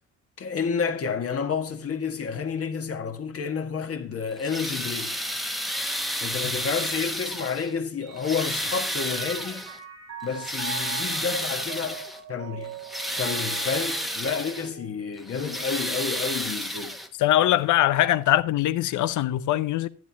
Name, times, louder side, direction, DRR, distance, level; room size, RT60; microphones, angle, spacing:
voice 1, 0.4-5.2 6.2-9.6 10.2-12.0 12.3-12.7 13.2-16.9, left 6 dB, 50° left, 1.6 m, -30 dB
sound 1, 4.3-7.8 8.2-9.8 10.2-12.2 12.6-14.7 15.2-17.3 18.4-18.5 19.1-19.2, equal, ahead, 1.1 m, -31 dB
Mallet percussion, 8.0-15.7, right 5 dB, 85° right, 2.5 m, -41 dB
voice 2, 17.2-19.9, left 13 dB, 75° left, 0.7 m, -22 dB
11.0 x 9.3 x 2.8 m
cardioid pair, 90°, 30 cm